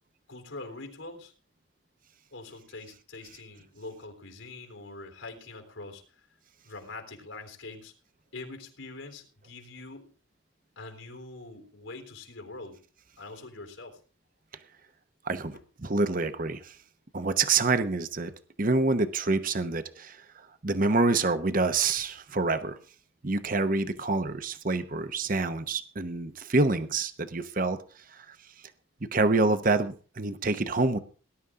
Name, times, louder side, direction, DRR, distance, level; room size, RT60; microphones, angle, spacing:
voice 1, 0.3-1.3 2.3-6.0 6.6-7.9 8.3-10.1 10.8-12.8 13.2-14.0, left 3 dB, 90° left, 4 dB, 3.7 m, -43 dB
voice 2, 15.2-16.8 17.1-18.3 18.6-20.2 20.6-22.8 23.2-27.8 28.1-28.4 29.0-31.0, right 3 dB, 45° right, 10 dB, 0.9 m, -27 dB
19.0 x 11.0 x 3.7 m, 0.39 s
head